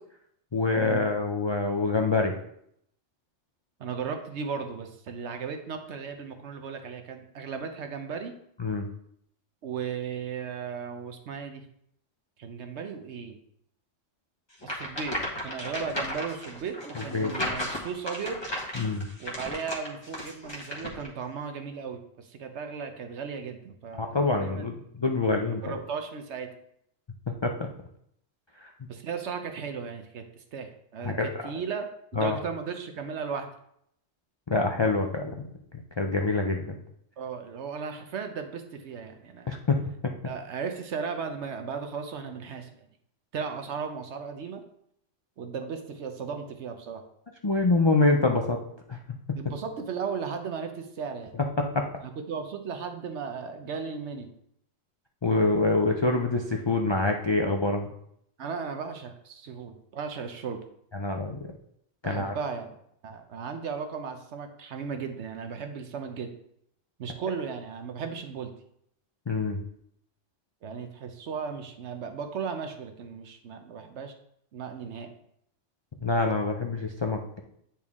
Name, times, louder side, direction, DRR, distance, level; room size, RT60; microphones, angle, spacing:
voice 1, 0.5-2.4 8.6-8.9 17.0-17.3 18.7-19.1 24.0-25.6 27.3-27.5 28.6-28.7 31.0-31.5 32.2-32.4 34.5-35.3 35.7-36.8 39.5-39.8 40.0-40.1 47.4-48.6 48.9-49.0 51.7-51.8 55.2-57.9 60.9-61.4 62.0-62.3 69.3-69.6 76.0-77.4, left 3 dB, 45° left, 2 dB, 0.3 m, -26 dB
voice 2, 3.8-8.3 9.6-11.6 12.4-13.4 14.6-18.4 19.2-24.1 24.4-24.7 25.6-26.5 28.9-31.1 31.4-33.5 37.2-39.5 40.2-42.7 43.3-44.6 45.4-47.0 49.4-51.3 52.3-54.3 58.4-60.6 62.0-62.7 63.0-66.3 67.0-68.5 70.6-74.1 74.5-75.1, right 6 dB, 65° right, 6 dB, 1.0 m, -36 dB
sound 1, 14.6-21.1, left 1 dB, 20° left, 1.2 m, -35 dB
8.7 x 4.3 x 3.6 m, 0.72 s
omnidirectional pair, 1.3 m